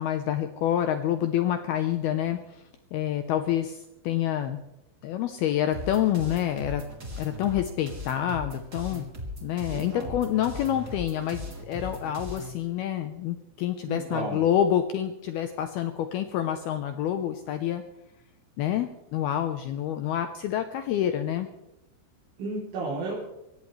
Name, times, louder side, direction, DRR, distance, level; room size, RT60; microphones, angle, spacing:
voice 1, 0.0-2.4 2.9-3.8 4.0-4.6 5.0-6.8 7.2-9.1 9.4-17.8 18.6-21.5, left 11 dB, 75° left, 7 dB, 2.4 m, -27 dB
sound 1, 5.7-12.5, left 1 dB, 20° right, 3.1 m, -38 dB
voice 2, 9.7-10.1 13.8-14.4 22.4-23.2, right 3 dB, 75° right, -6 dB, 5.7 m, -33 dB
24.0 x 18.0 x 3.3 m, 0.91 s
omnidirectional pair, 5.3 m